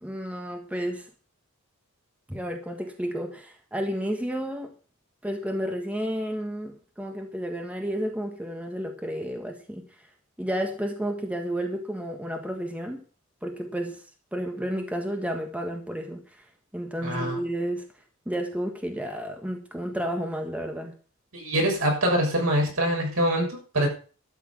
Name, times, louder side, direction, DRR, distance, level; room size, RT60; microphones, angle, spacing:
voice 1, 0.0-1.1 2.3-4.7 5.2-9.8 10.4-13.0 13.4-14.0 14.3-16.2 16.7-17.8 18.2-20.9, equal, 5° right, 3 dB, 1.5 m, -31 dB
voice 2, 17.0-17.4 21.3-23.9, right 1 dB, 75° right, 0 dB, 6.8 m, -24 dB
13.0 x 7.3 x 7.3 m, 0.39 s
head